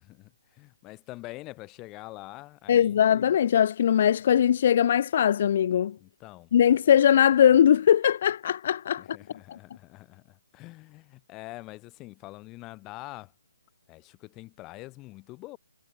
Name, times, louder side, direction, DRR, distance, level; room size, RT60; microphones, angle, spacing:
voice 1, 0.0-3.0 6.0-6.5 9.0-13.3 13.9-15.6, left 20 dB, 20° left, 6.0 m, -45 dB
voice 2, 2.7-6.0 6.5-9.0 9.5-9.6, left 9 dB, 45° left, 0.9 m, -20 dB
hypercardioid pair, 155°, 0 cm